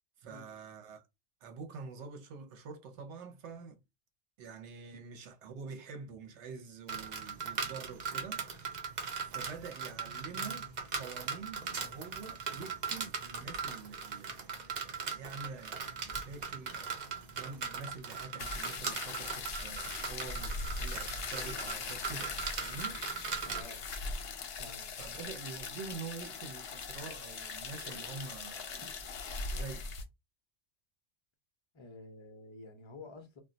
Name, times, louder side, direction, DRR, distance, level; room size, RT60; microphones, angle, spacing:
voice 1, 0.2-1.1 1.4-3.8 4.4-23.0 25.0-28.8 29.5-29.9, right 5 dB, 75° right, 1.0 m, -47 dB
sound 1, 6.9-23.6, right 5 dB, 50° right, 0.5 m, -39 dB
sound 2, 18.4-30.0, left 4 dB, 65° left, 0.8 m, -40 dB
voice 2, 23.4-23.9 24.6-25.3 31.7-33.4, left 2 dB, 35° left, 0.5 m, -50 dB
2.2 x 2.2 x 3.8 m
omnidirectional pair, 1.2 m